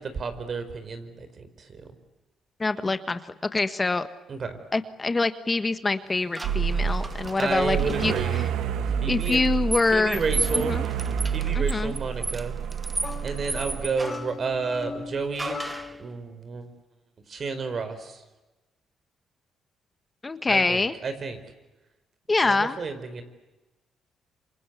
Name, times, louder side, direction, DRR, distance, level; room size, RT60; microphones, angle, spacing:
voice 1, 0.0-1.9 4.3-4.6 7.4-8.4 9.0-9.4 9.9-10.7 11.3-12.6 13.2-15.6 16.0-16.7 17.3-18.2 20.5-21.4 22.4-23.2, right 4 dB, 45° right, 10 dB, 4.8 m, -31 dB
voice 2, 2.6-3.2 3.5-4.1 4.7-7.8 8.0-8.4 9.1-10.2 10.5-10.8 11.5-11.9 20.2-21.0 22.3-22.8, left 3 dB, 25° left, 10 dB, 1.5 m, -25 dB
sound 1, 6.4-8.2 9.2-14.4 15.4-16.0, right 2 dB, 20° right, 1.0 m, -34 dB
sound 2, 6.4-13.9, right 7 dB, 85° right, 2.0 m, -29 dB
sound 3, 13.0-16.1, left 5 dB, 40° left, 2.1 m, -39 dB
27.5 x 26.0 x 8.3 m, 1.1 s
cardioid pair, 90°, 0 cm